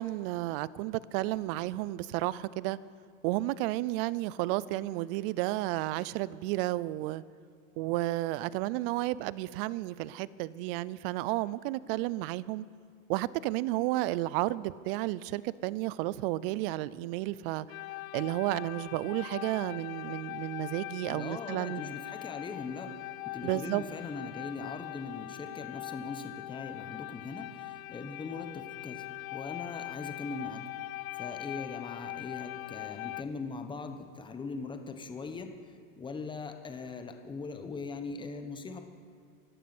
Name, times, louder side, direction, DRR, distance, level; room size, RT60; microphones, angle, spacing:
voice 1, 0.0-2.8 3.2-7.2 7.8-12.6 13.1-17.7 18.1-21.8 23.4-23.8, right 17 dB, 45° right, 0.5 m, -32 dB
sound 1, 17.7-33.2, left 19 dB, 80° left, 0.6 m, -42 dB
voice 2, 21.1-22.9 23.2-29.1 29.3-30.6 31.1-38.8, left 4 dB, 10° left, 1.1 m, -40 dB
17.0 x 12.0 x 6.1 m
supercardioid pair, 135°, 40 cm